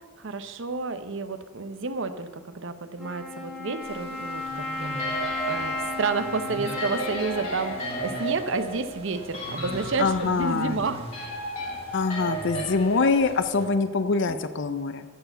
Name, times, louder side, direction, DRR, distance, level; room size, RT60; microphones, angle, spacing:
voice 1, 0.2-11.4, right 3 dB, 65° right, 11 dB, 0.8 m, -30 dB
Wind instrument woodwind instrument, 3.0-8.7, left 2 dB, ahead, 2.4 m, -35 dB
sound 1, 3.8-13.7, right 1 dB, 30° right, 1.5 m, -43 dB
sound 2, 4.8-14.3, right 1 dB, 35° left, 3.2 m, -35 dB
voice 2, 10.0-10.8 11.9-15.0, left 4 dB, 60° left, 11 dB, 0.6 m, -24 dB
13.0 x 4.8 x 7.9 m, 1.4 s
head